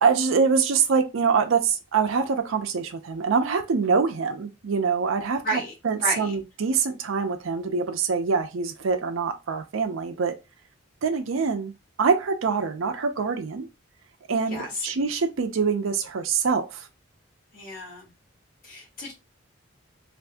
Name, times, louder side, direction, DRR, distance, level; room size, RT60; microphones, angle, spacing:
voice 1, 0.0-5.6 5.8-10.3 11.0-11.7 12.0-13.7 14.3-16.9, right 5 dB, 85° right, 0.5 m, -24 dB
voice 2, 5.4-5.7 6.0-6.3 14.4-14.9 17.5-18.1 18.6-19.1, equal, 45° left, 1.6 m, -31 dB
3.4 x 2.6 x 2.6 m
head